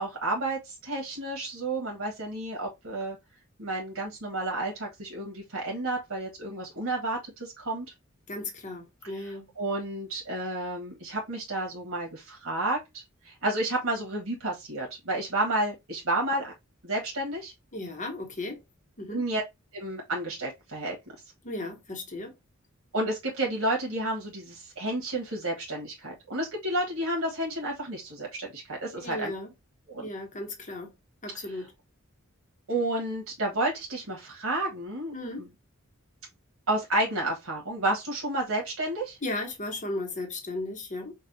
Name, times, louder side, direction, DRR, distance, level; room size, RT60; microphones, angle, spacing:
voice 1, 0.0-3.2 3.6-7.8 9.0-16.5 16.8-17.5 19.1-19.4 19.7-20.9 22.9-29.3 29.9-30.0 31.4-31.6 32.7-35.5 36.7-39.2, right 1 dB, 75° right, 1.4 m, -31 dB
voice 2, 8.3-9.5 17.7-18.6 19.0-19.2 21.4-22.3 29.0-29.5 30.0-30.9 31.2-31.7 35.1-35.4 39.2-41.1, left 2 dB, 35° left, 1.0 m, -35 dB
5.4 x 2.4 x 2.7 m
head